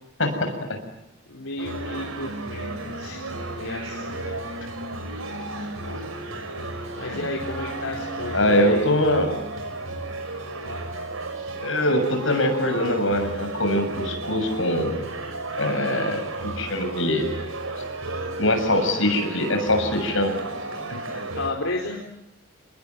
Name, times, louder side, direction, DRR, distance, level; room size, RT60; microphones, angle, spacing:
voice 1, 0.2-0.5 7.1-7.2 8.3-9.3 11.6-15.0 15.6-16.2 16.6-17.3 18.4-20.3, left 1 dB, 70° left, 5 dB, 7.2 m, -22 dB
voice 2, 1.3-4.4 5.8-6.1 6.9-8.9 21.3-22.0, left 2 dB, 85° left, 0 dB, 4.2 m, -33 dB
sound 1, 1.6-21.5, right 2 dB, 90° right, 6.0 m, -33 dB
29.0 x 21.0 x 9.7 m, 0.86 s
head